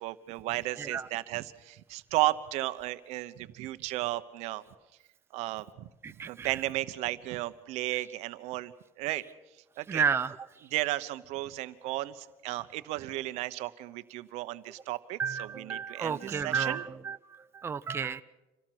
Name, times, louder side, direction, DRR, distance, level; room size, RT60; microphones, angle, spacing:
voice 1, 0.0-4.6 5.3-5.9 6.3-9.2 9.8-10.0 10.6-16.8, right 17 dB, 85° right, 12 dB, 1.0 m, -34 dB
voice 2, 6.0-6.5 9.9-10.4 15.2-17.2 17.6-18.2, right 6 dB, 20° right, 11 dB, 0.6 m, -31 dB
27.0 x 18.0 x 6.1 m, 1.0 s
cardioid pair, 135°, 11 cm